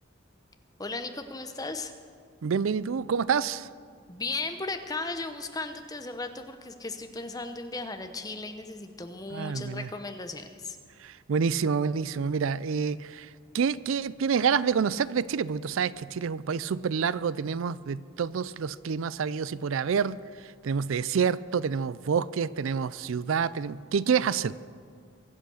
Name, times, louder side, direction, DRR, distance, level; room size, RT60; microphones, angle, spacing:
voice 1, 0.8-1.9 4.1-10.8, left 3 dB, 20° left, 7 dB, 0.9 m, -36 dB
voice 2, 2.4-3.7 9.3-9.9 11.0-13.3 13.5-20.2 20.4-24.5, right 6 dB, 80° right, 18 dB, 0.4 m, -28 dB
23.5 x 8.0 x 6.4 m, 2.1 s
head